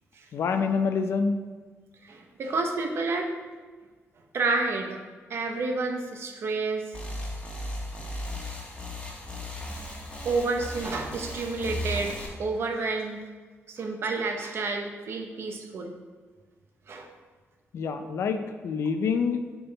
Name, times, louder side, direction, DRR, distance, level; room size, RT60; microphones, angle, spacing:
voice 1, 0.3-1.4 17.7-19.4, left 5 dB, 65° left, 8 dB, 0.5 m, -26 dB
voice 2, 2.0-3.3 4.3-5.0 5.3-6.9 9.3-9.4 10.2-13.2 13.7-15.9 16.9-17.1, right 3 dB, 60° right, 3 dB, 0.8 m, -30 dB
sound 1, 6.9-12.3, left 1 dB, 25° left, 1.3 m, -36 dB
6.9 x 3.9 x 4.0 m, 1.4 s
cardioid pair, 130°, 5 cm